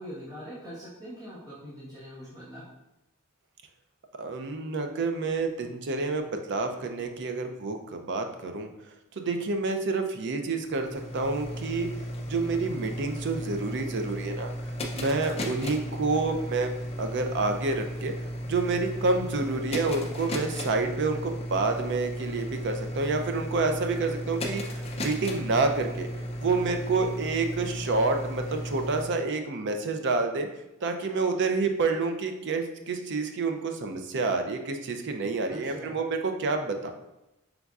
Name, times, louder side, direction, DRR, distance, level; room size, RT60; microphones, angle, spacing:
voice 1, 0.0-2.6 35.5-35.9, equal, 15° right, -12 dB, 1.2 m, -42 dB
voice 2, 4.2-7.8 8.0-8.7 9.2-11.9 12.3-14.5 14.9-16.7 17.0-18.1 18.5-26.1 26.4-30.5 30.8-36.9, right 3 dB, 55° right, 6 dB, 0.5 m, -28 dB
sound 1, 10.5-29.0, equal, 30° left, 0.5 m, -35 dB
5.2 x 3.4 x 2.4 m, 0.93 s
head